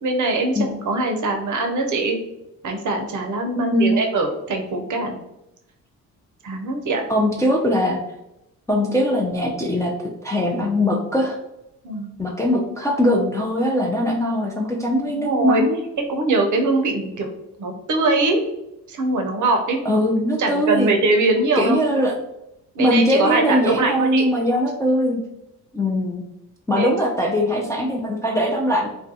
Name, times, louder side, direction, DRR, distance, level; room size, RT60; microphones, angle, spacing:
voice 1, 0.0-2.2 2.6-5.2 6.4-7.0 11.8-12.2 15.1-15.6 16.0-17.3 17.6-18.4 18.9-19.8 20.4-21.8 22.7-24.3 26.7-26.9, right 2 dB, 50° right, 3 dB, 0.6 m, -22 dB
voice 2, 3.6-3.9 7.1-8.0 8.7-9.9 10.2-11.4 12.2-15.9 19.8-20.9 21.5-22.1 22.8-25.2 25.7-26.2 26.7-28.9, equal, 10° left, -2 dB, 0.4 m, -21 dB
2.4 x 2.2 x 2.6 m, 0.87 s
hypercardioid pair, 50°, 40 cm